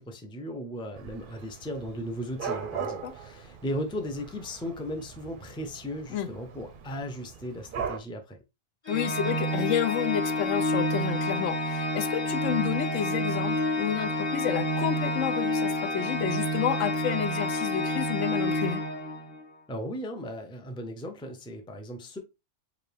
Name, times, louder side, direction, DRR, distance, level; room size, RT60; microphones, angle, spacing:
voice 1, 0.0-8.4 19.7-22.2, equal, 5° left, 0.4 m, -36 dB
Dog / Cat, 1.0-8.0, right 6 dB, 55° right, 0.6 m, -40 dB
voice 2, 2.8-3.1 6.1-6.3 8.9-18.8, left 9 dB, 85° left, 0.9 m, -30 dB
Organ, 8.8-19.5, equal, 25° left, 1.0 m, -29 dB
4.8 x 2.6 x 3.3 m
omnidirectional pair, 1.2 m